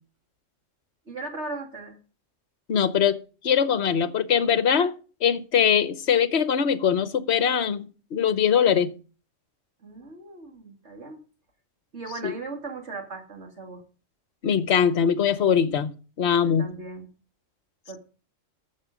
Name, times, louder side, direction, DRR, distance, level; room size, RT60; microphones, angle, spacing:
voice 1, 1.1-2.0 9.8-11.2 11.9-13.8 16.4-17.1 17.9-18.0, right 3 dB, 60° right, 2.9 m, -38 dB
voice 2, 2.7-3.2 3.4-4.9 5.2-8.9 12.2-12.3 14.4-15.9 16.2-16.7, left 7 dB, 60° left, 1.1 m, -22 dB
12.0 x 7.6 x 5.0 m
omnidirectional pair, 1.3 m